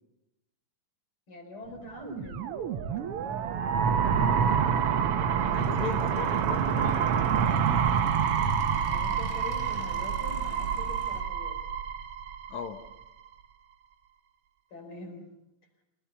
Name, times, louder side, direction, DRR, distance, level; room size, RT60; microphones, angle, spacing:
voice 1, 1.3-2.4 2.9-3.7 8.8-11.6 14.7-15.3, left 1 dB, 40° left, 4 dB, 5.1 m, -44 dB
sound 1, 2.0-12.9, right 7 dB, 70° right, 1.4 m, -27 dB
voice 2, 5.4-7.9 12.5-12.8, left 7 dB, 65° left, 7 dB, 2.1 m, -38 dB
Motorcycle / Engine, 5.4-11.2, equal, 10° left, 3.4 m, -47 dB
26.0 x 19.5 x 7.0 m, 0.90 s
omnidirectional pair, 3.9 m